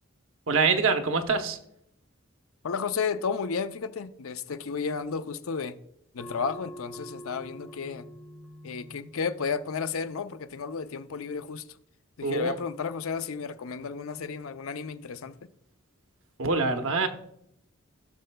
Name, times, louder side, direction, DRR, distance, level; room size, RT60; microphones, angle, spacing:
voice 1, 0.5-1.6 12.2-12.6 16.4-17.1, right 4 dB, 75° right, 0.9 m, -25 dB
voice 2, 2.6-5.7 6.1-8.1 8.6-11.7 12.2-15.4, left 5 dB, 85° left, 0.5 m, -32 dB
sound 1, 6.2-11.3, equal, ahead, 0.6 m, -47 dB
16.5 x 6.6 x 2.2 m
head